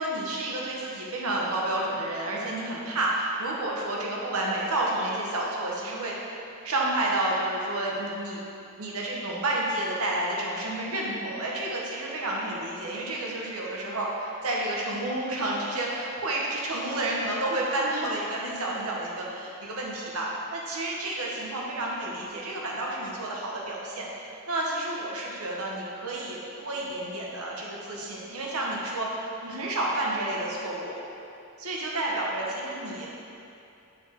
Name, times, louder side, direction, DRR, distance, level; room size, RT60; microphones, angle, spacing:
voice 1, 0.0-6.3 6.6-8.4 8.8-24.0 24.5-29.1 29.4-31.0 31.6-33.1, right 1 dB, 90° right, -3 dB, 1.1 m, -30 dB
7.3 x 4.7 x 3.7 m, 2.7 s
head